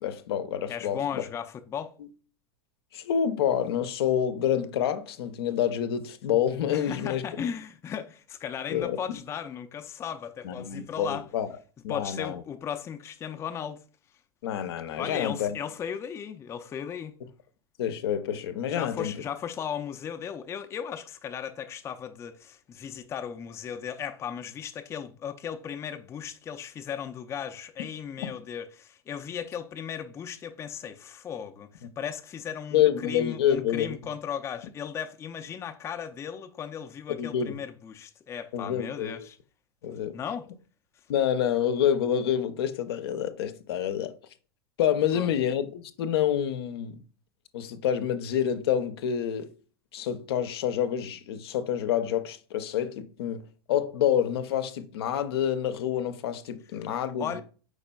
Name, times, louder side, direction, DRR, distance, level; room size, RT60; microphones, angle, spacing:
voice 1, 0.0-1.2 2.9-7.2 8.7-9.2 10.4-11.5 11.8-12.4 14.4-15.6 17.8-19.2 28.2-28.3 32.7-34.0 37.2-37.6 38.5-39.3 39.8-40.1 41.1-44.1 44.8-47.0 47.5-49.5 49.9-57.4, left 9 dB, 70° left, 0.6 m, -28 dB
voice 2, 0.7-1.9 6.7-11.3 11.9-13.8 15.0-17.1 18.7-39.4 40.1-40.5 45.1-45.3 57.2-57.4, left 8 dB, 20° left, 0.4 m, -36 dB
4.8 x 4.2 x 2.2 m
hypercardioid pair, 110°, 13 cm